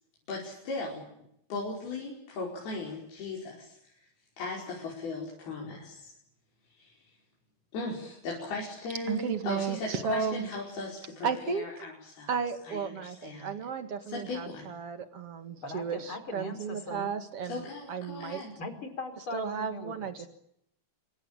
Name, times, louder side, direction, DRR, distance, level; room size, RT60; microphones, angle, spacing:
voice 1, 0.3-1.2 1.5-4.1 4.4-6.1 6.8-7.0 7.7-12.3 12.6-13.5 14.0-14.7 17.4-18.6, left 3 dB, 85° left, -3 dB, 7.2 m, -38 dB
voice 2, 9.1-10.4 11.2-11.9 12.3-18.4 19.3-20.3, right 6 dB, 45° right, 9 dB, 2.6 m, -34 dB
voice 3, 15.6-17.1 18.6-19.9 20.2-20.3, left 2 dB, 35° left, 8 dB, 5.3 m, -40 dB
27.5 x 23.5 x 9.0 m, 0.76 s
omnidirectional pair, 4.3 m